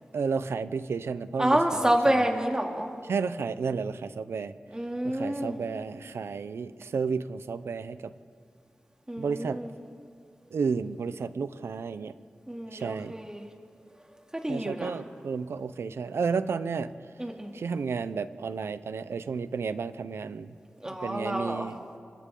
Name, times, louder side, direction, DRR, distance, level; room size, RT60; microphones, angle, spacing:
voice 1, 0.1-2.2 3.1-4.5 5.0-8.1 9.2-9.6 10.5-12.1 12.7-13.1 14.5-16.9 17.5-20.5 20.9-21.8, right 5 dB, 90° right, 13 dB, 0.7 m, -32 dB
voice 2, 1.4-2.9 4.7-5.6 9.1-9.7 12.5-13.5 14.3-14.9 17.2-17.5 20.8-21.7, right 1 dB, 15° right, 1 dB, 2.8 m, -28 dB
27.0 x 25.5 x 3.9 m, 2.2 s
cardioid pair, 50°, 4 cm